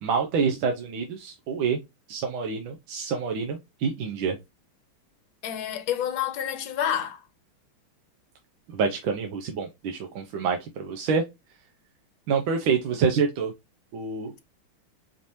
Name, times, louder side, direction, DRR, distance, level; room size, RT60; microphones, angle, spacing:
voice 1, 0.0-1.8 2.1-4.4 8.7-11.2 12.3-13.5 13.9-14.3, right 5 dB, 75° right, 1.5 m, -27 dB
voice 2, 5.4-7.2, left 9 dB, 70° left, 1.5 m, -28 dB
5.2 x 3.0 x 2.6 m
omnidirectional pair, 2.3 m